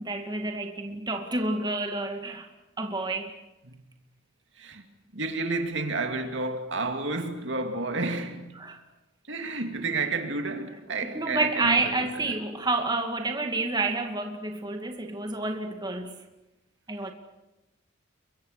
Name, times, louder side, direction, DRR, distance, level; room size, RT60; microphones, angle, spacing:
voice 1, 0.0-2.5 2.8-3.3 8.6-8.8 11.1-16.1 16.9-17.1, right 2 dB, 20° right, 2.1 m, -29 dB
voice 2, 5.1-8.5 9.3-12.4, right 3 dB, 65° right, 2.6 m, -31 dB
30.0 x 23.5 x 6.6 m
head